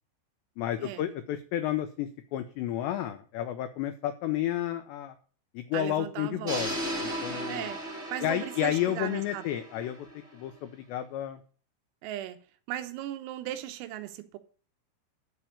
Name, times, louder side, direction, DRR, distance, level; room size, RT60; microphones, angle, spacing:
voice 1, 0.6-5.2 5.5-6.7 7.0-7.7 8.2-10.1 10.3-11.4, left 11 dB, 85° left, 2.4 m, -31 dB
voice 2, 5.7-6.7 7.5-7.8 8.1-9.5 12.0-12.4 12.7-14.4, right 12 dB, 85° right, 3.6 m, -37 dB
sound 1, 6.5-10.5, right 1 dB, 50° right, 0.7 m, -36 dB
13.0 x 4.4 x 8.4 m
omnidirectional pair, 6.0 m